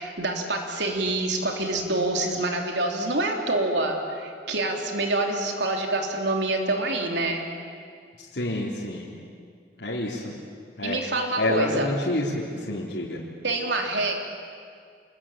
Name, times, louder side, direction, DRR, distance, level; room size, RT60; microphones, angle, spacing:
voice 1, 0.0-7.4 10.8-11.9 13.4-14.2, right 2 dB, 85° right, 2 dB, 3.5 m, -26 dB
voice 2, 8.3-9.1 9.8-10.3 10.8-11.0 11.4-13.2, left 1 dB, 80° left, -5 dB, 3.6 m, -28 dB
27.5 x 21.5 x 8.8 m, 2.1 s
head